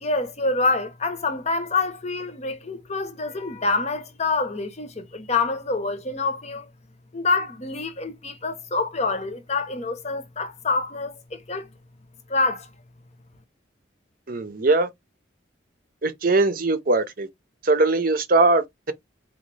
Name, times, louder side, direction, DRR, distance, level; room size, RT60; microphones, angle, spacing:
voice 1, 0.0-6.7 7.1-11.7 12.3-12.7, left 3 dB, 35° left, 0.8 m, -26 dB
voice 2, 14.3-14.9 16.0-17.3 17.6-18.9, right 2 dB, 45° right, 0.7 m, -21 dB
4.1 x 2.9 x 3.2 m
head